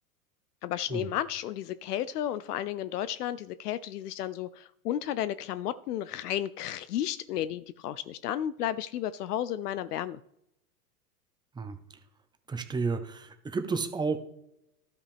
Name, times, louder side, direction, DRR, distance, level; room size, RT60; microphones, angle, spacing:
voice 1, 0.6-10.2, left 11 dB, 80° left, 15 dB, 0.5 m, -33 dB
voice 2, 12.5-14.2, right 4 dB, 10° right, 8 dB, 0.7 m, -31 dB
12.5 x 5.6 x 3.5 m, 0.80 s
hypercardioid pair, 105°, 46 cm